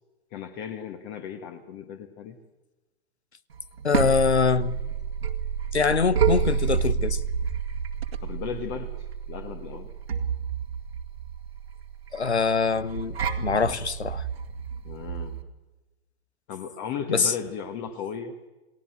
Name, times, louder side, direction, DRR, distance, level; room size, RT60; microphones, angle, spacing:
voice 1, 0.3-2.4 8.2-9.9 13.4-13.9 14.8-15.4 16.5-18.3, left 7 dB, 35° left, 1.7 m, -36 dB
sound 1, 3.5-15.4, right 7 dB, 70° right, 2.2 m, -29 dB
voice 2, 3.8-4.7 5.7-7.2 12.1-14.2 17.1-17.3, left 5 dB, 85° left, 1.0 m, -24 dB
28.5 x 19.0 x 8.0 m
figure-of-eight pair, 105°, 32 cm